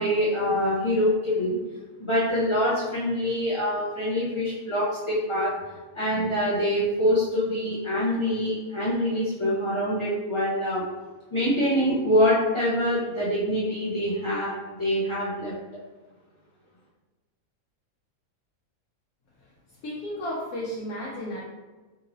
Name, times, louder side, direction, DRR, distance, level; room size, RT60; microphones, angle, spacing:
voice 1, 0.0-1.6 2.0-5.5 5.9-10.8 11.3-15.5, equal, 30° left, -9 dB, 0.6 m, -25 dB
voice 2, 19.8-21.4, equal, 85° left, -6 dB, 1.2 m, -33 dB
3.7 x 2.7 x 2.9 m, 1.2 s
omnidirectional pair, 1.4 m